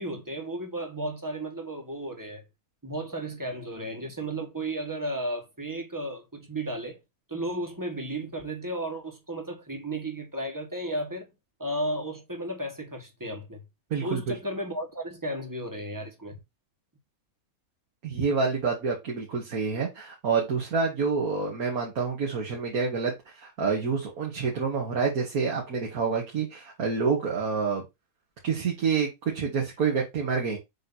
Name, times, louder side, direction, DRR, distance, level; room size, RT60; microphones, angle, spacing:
voice 1, 0.0-2.4 2.8-7.0 7.3-11.3 11.6-13.6 14.0-16.4, right 1 dB, 15° right, 1.5 m, -34 dB
voice 2, 13.9-14.4 18.0-27.8 28.4-30.6, right 5 dB, 75° right, 2.1 m, -28 dB
7.5 x 3.2 x 4.1 m
omnidirectional pair, 1.5 m